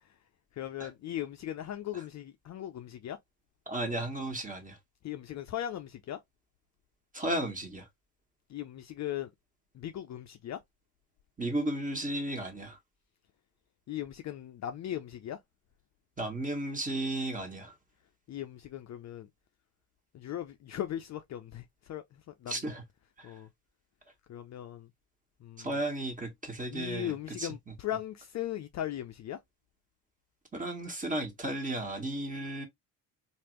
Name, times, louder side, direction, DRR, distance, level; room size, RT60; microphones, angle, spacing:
voice 1, 0.5-3.2 5.0-6.2 8.5-9.3 9.7-10.6 13.9-15.4 18.3-19.3 20.1-22.6 23.2-23.5 24.3-24.9 25.4-25.8 26.7-29.4, left 11 dB, 45° left, 0.5 m, -38 dB
voice 2, 3.7-4.8 7.1-7.8 11.4-12.8 16.2-17.7 22.5-22.8 23.2-23.3 25.6-27.1 27.4-27.5 30.5-32.7, right 1 dB, 20° right, 1.4 m, -34 dB
3.3 x 2.6 x 3.0 m
supercardioid pair, 70°, 41 cm